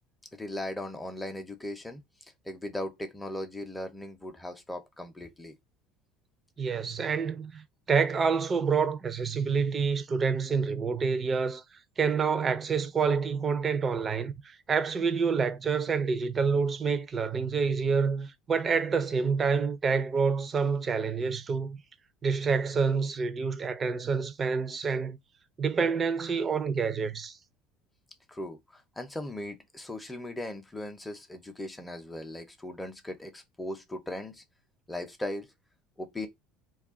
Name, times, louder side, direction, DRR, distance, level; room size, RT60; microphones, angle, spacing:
voice 1, 0.3-2.0 2.5-5.6 28.3-34.4 34.9-35.5 36.0-36.3, left 1 dB, 10° left, 0.7 m, -38 dB
voice 2, 6.6-11.6 12.0-21.8 22.2-25.2 25.6-27.4, right 5 dB, 30° right, 0.5 m, -28 dB
2.4 x 2.2 x 3.6 m
supercardioid pair, 105°, 0 cm